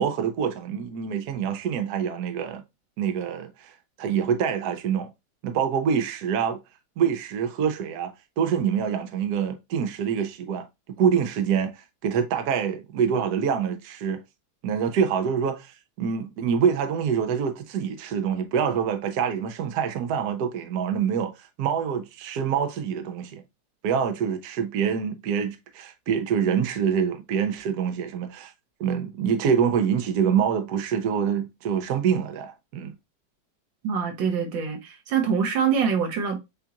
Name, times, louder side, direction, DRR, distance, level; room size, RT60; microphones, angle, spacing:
voice 1, 0.0-2.6 3.0-5.1 5.4-6.6 7.0-10.7 11.0-14.2 14.6-23.4 23.8-28.5 28.8-32.9, right 7 dB, 65° right, 1.2 m, -26 dB
voice 2, 33.8-36.4, right 6 dB, 85° right, 1.8 m, -24 dB
7.1 x 2.4 x 2.8 m
omnidirectional pair, 2.0 m